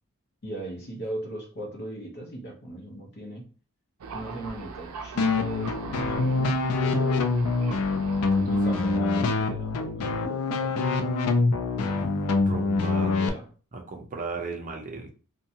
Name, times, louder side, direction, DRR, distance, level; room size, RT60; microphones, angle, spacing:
voice 1, 0.4-3.4 4.1-7.3 8.5-11.2 12.7-13.4, right 1 dB, 50° left, 0.8 m, -39 dB
Thunder, 4.0-9.0, right 4 dB, 90° right, 0.4 m, -41 dB
sound 1, 5.2-13.3, left 3 dB, 80° left, 0.4 m, -25 dB
voice 2, 8.4-8.8 11.8-13.2 13.7-15.1, right 4 dB, 35° right, 0.5 m, -37 dB
2.7 x 2.2 x 2.7 m
head